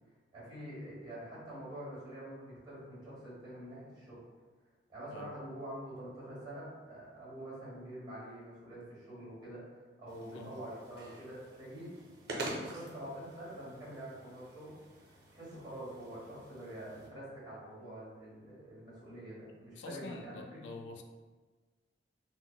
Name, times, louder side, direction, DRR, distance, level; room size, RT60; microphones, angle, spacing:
voice 1, 0.3-4.2 4.9-11.9 12.3-14.7 15.0-20.6, right 1 dB, 25° right, -8 dB, 1.4 m, -46 dB
sound 1, 10.1-17.1, right 2 dB, 60° right, 0.6 m, -47 dB
voice 2, 19.8-21.0, left 3 dB, 75° left, 4 dB, 0.3 m, -46 dB
3.9 x 2.0 x 2.3 m, 1.3 s
head